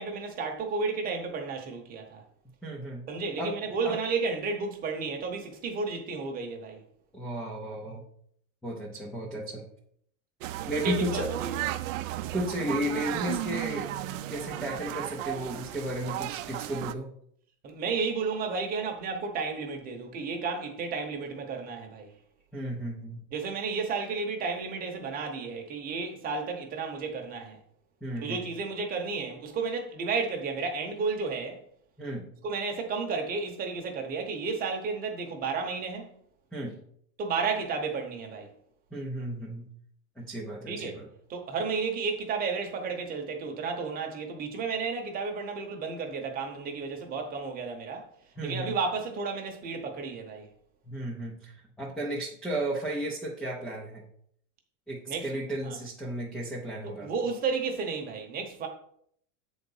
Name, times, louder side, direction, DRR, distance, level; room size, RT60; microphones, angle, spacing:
voice 1, 0.0-2.2 3.1-6.8 10.6-11.5 17.6-22.1 23.3-27.6 28.2-31.6 32.4-36.1 37.2-38.5 40.7-41.0 41.3-48.1 48.4-50.5 55.1-55.2 55.6-55.8 56.8-58.7, right 4 dB, 20° right, 0.9 m, -32 dB
voice 2, 2.6-3.1 3.4-3.6 3.8-4.0 7.1-8.0 8.6-9.6 10.7-11.4 12.3-14.0 14.3-17.1 22.5-23.3 28.0-28.5 32.0-32.3 36.5-36.8 38.9-39.7 40.2-41.1 48.4-48.8 50.9-54.0 54.9-57.1, right 1 dB, ahead, 0.4 m, -34 dB
sound 1, 10.4-16.9, right 14 dB, 65° right, 0.5 m, -34 dB
7.6 x 4.0 x 5.4 m
supercardioid pair, 180°, 42 cm